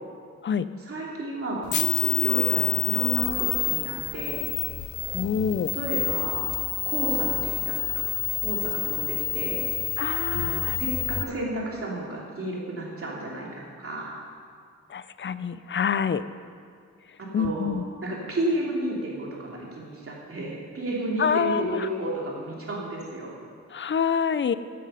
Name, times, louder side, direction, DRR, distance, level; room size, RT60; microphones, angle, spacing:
voice 1, 0.9-4.5 5.7-6.5 6.8-8.0 8.4-9.7 10.3-14.2 17.2-17.8 18.0-23.4, right 1 dB, 50° right, -3 dB, 2.8 m, -32 dB
sound 1, 1.7-11.2, left 11 dB, 80° left, 0.7 m, -28 dB
voice 2, 5.0-5.7 10.0-10.8 14.9-16.2 17.3-17.8 21.2-21.9 23.7-24.5, left 7 dB, 40° left, 14 dB, 0.4 m, -26 dB
15.0 x 9.0 x 5.6 m, 2.2 s
wide cardioid pair, 165°, 29 cm